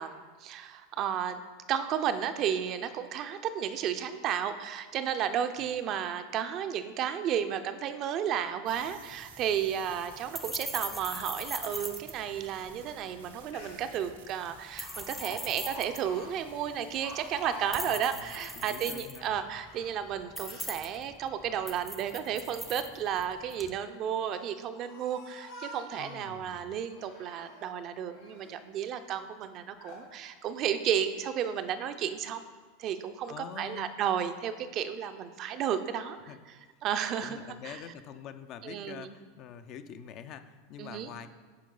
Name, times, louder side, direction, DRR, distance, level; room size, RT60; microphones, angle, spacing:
voice 1, 0.0-1.4 1.7-32.4 32.8-36.2 36.8-37.4 37.6-37.8 38.6-39.2 40.8-41.1, right 9 dB, 45° right, 9 dB, 0.5 m, -33 dB
sound 1, 8.7-23.8, equal, 5° left, 0.6 m, -42 dB
sound 2, 8.7-17.8, right 8 dB, 80° right, 0.7 m, -54 dB
Speech, 13.2-13.3 13.5-14.0 14.8-18.6 19.1-20.7 21.3-22.1 23.0-23.6 24.3-26.3 26.9-27.7 28.1-28.6 29.1-29.2 29.8-30.1 30.6-30.8, left 1 dB, 85° left, 2.2 m, -48 dB
voice 2, 15.2-15.6 17.6-19.4 26.0-26.7 33.3-33.9 36.3-36.4 37.2-41.3, left 8 dB, 50° left, 9 dB, 0.5 m, -46 dB
9.9 x 4.7 x 3.9 m, 1.4 s
hypercardioid pair, 105°, 0 cm